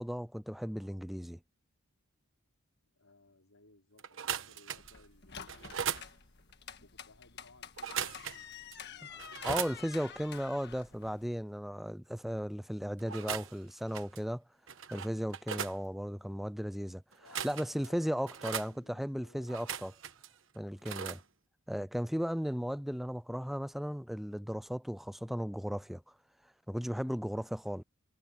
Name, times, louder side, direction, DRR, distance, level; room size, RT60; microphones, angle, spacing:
voice 1, 0.0-1.4 9.4-14.4 14.9-17.0 17.4-19.9 20.5-21.2 21.7-26.1 26.7-27.8, equal, ahead, 0.3 m, -36 dB
voice 2, 2.8-6.2 6.8-9.6 17.2-19.5 20.8-21.1, left 2 dB, 75° left, 4.7 m, -63 dB
sound 1, 4.0-5.0 5.5-6.1 7.8-8.4 8.7-8.8 9.2-9.8 13.0-13.6 13.9-14.2 14.7-15.8 17.1-17.9 18.3-18.7 19.5-20.3 20.8-21.2, right 8 dB, 60° right, 1.2 m, -38 dB
sound 2, 4.8-11.3, left 7 dB, 50° left, 1.5 m, -49 dB
head